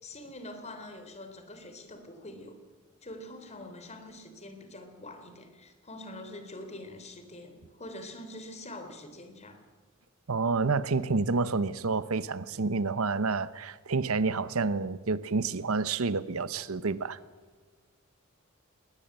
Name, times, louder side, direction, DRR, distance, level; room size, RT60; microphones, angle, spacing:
voice 1, 0.0-2.6 3.0-9.6, left 1 dB, 30° left, 3.3 m, -45 dB
voice 2, 10.3-17.2, right 4 dB, 80° right, 0.9 m, -29 dB
20.5 x 19.5 x 7.8 m
head